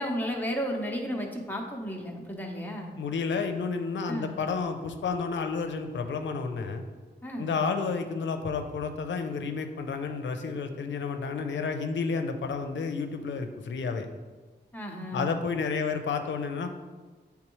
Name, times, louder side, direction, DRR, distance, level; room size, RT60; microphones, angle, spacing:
voice 1, 0.0-2.9 4.1-4.3 7.2-7.5 14.7-15.4, equal, 10° left, 0 dB, 0.8 m, -33 dB
voice 2, 3.0-6.8 7.4-14.1 15.1-16.7, left 5 dB, 90° left, 6 dB, 0.5 m, -31 dB
8.8 x 3.5 x 3.0 m, 1.4 s
wide cardioid pair, 140°, 19 cm